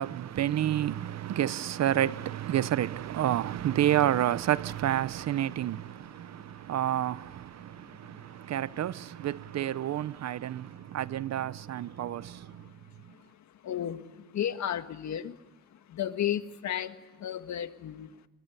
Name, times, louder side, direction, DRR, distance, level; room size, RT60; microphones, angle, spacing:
voice 1, 0.0-12.7, right 12 dB, 60° right, 0.8 m, -30 dB
voice 2, 6.3-6.8 7.6-8.4 10.4-10.9 12.2-12.3 12.6-15.4 15.7-18.2, left 10 dB, 65° left, 1.8 m, -36 dB
28.5 x 22.5 x 8.3 m
cardioid pair, 90°, 30 cm